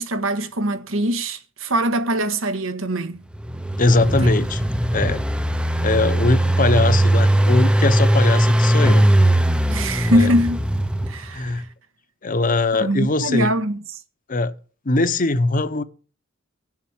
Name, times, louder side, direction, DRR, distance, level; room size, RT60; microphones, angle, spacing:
voice 1, 0.0-3.2 4.0-4.1 9.7-10.6 11.1-11.6 12.8-13.8, equal, 80° right, 1.5 m, -22 dB
Engine, 3.3-11.4, right 1 dB, 5° right, 0.6 m, -19 dB
voice 2, 3.8-4.7 4.9-5.2 5.8-9.1 10.1-10.3 11.3-11.6 12.2-13.5 14.3-14.5 14.8-15.8, left 2 dB, 40° left, 0.9 m, -21 dB
16.5 x 7.4 x 7.2 m
head